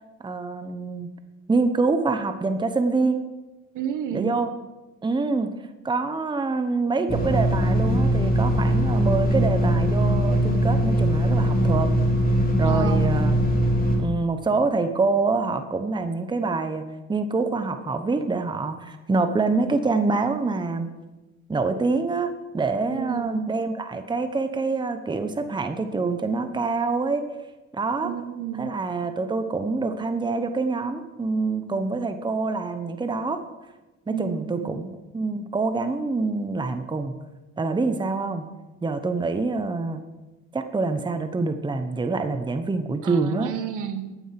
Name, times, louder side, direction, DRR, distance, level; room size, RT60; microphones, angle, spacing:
voice 1, 0.2-1.2 1.5-3.2 4.1-4.5 5.0-5.5 5.8-11.9 12.6-13.4 14.0-16.8 17.1-20.9 21.5-27.3 27.7-28.1 28.5-33.4 34.1-37.1 37.6-38.4 38.8-40.0 40.5-43.5, right 3 dB, 15° right, 8 dB, 0.9 m, -26 dB
voice 2, 3.7-4.3 12.6-13.1 22.9-23.5 28.0-28.7 34.1-34.7 43.0-44.1, right 9 dB, 70° right, 9 dB, 1.4 m, -31 dB
sound 1, 7.1-14.0, equal, 25° left, 3.4 m, -21 dB
14.5 x 9.2 x 5.9 m, 1.1 s
cardioid pair, 120°, 32 cm